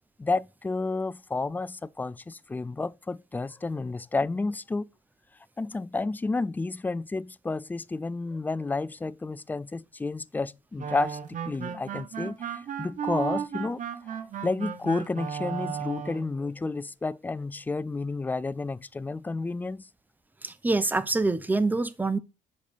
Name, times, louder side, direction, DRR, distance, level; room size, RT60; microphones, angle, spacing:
voice 1, 0.2-4.9 5.6-19.9, left 3 dB, 10° left, 0.3 m, -31 dB
sound 1, 10.8-16.3, right 8 dB, 50° right, 1.2 m, -34 dB
voice 2, 20.4-22.2, right 3 dB, 10° right, 0.7 m, -25 dB
6.7 x 5.1 x 4.2 m
cardioid pair, 110°, 17 cm